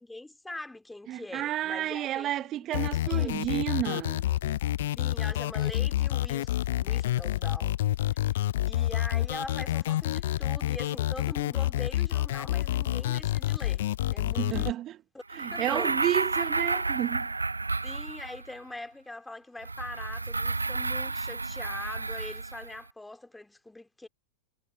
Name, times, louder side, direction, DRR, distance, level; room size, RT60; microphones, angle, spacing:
voice 1, 0.0-2.7 3.0-3.3 5.0-7.8 8.1-8.3 8.7-13.8 14.1-14.7 15.5-16.0 17.8-24.1, left 2 dB, 5° left, 2.7 m, -42 dB
voice 2, 1.1-4.3 14.4-15.0 15.3-17.3, right 13 dB, 30° right, 1.0 m, -31 dB
Distorted Synth Melody, 2.7-14.7, left 13 dB, 55° left, 0.4 m, -28 dB
sound 1, 15.3-18.5 19.6-22.8, right 3 dB, 80° right, 0.9 m, -31 dB
figure-of-eight pair, 90°, 0 cm